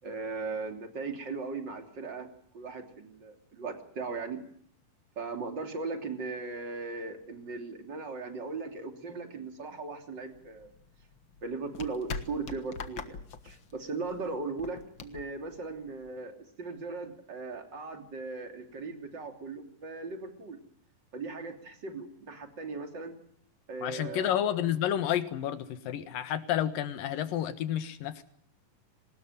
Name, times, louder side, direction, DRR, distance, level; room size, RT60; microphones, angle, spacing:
voice 1, 0.0-2.3 2.5-4.4 5.1-10.7 11.4-20.6 21.1-23.2 23.7-24.3, right 3 dB, 30° right, 5 dB, 3.4 m, -38 dB
sound 1, 10.3-16.2, left 5 dB, 45° left, 1.8 m, -44 dB
voice 2, 23.8-28.2, left 10 dB, 80° left, 12 dB, 3.2 m, -30 dB
23.5 x 20.0 x 9.2 m, 0.67 s
omnidirectional pair, 4.0 m